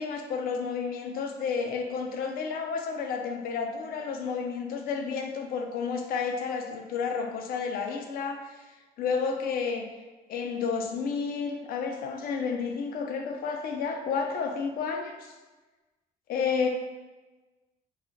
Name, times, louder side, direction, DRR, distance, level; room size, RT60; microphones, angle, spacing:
voice 1, 0.0-8.6 9.0-9.9 10.3-15.3 16.3-16.7, left 5 dB, 60° left, 3 dB, 0.5 m, -31 dB
2.3 x 2.1 x 3.8 m, 1.2 s
cardioid pair, 110°, 17 cm